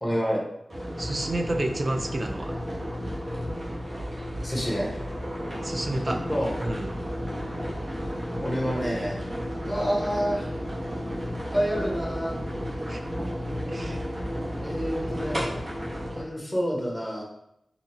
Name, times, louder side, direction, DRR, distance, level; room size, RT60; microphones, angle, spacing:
voice 1, 0.0-0.4 4.4-4.9 6.1-6.5 8.4-9.2 9.6-10.5 11.5-12.3 14.6-15.6 16.1-17.2, equal, 5° left, -3 dB, 1.3 m, -28 dB
sound 1, 0.7-16.2, equal, 65° right, 1.4 m, -32 dB
voice 2, 1.0-2.5 5.6-6.2 6.6-6.9 12.9-13.0 13.7-14.0, right 1 dB, 40° right, 5 dB, 0.4 m, -30 dB
4.0 x 2.8 x 2.8 m, 0.79 s
cardioid pair, 50°, 0 cm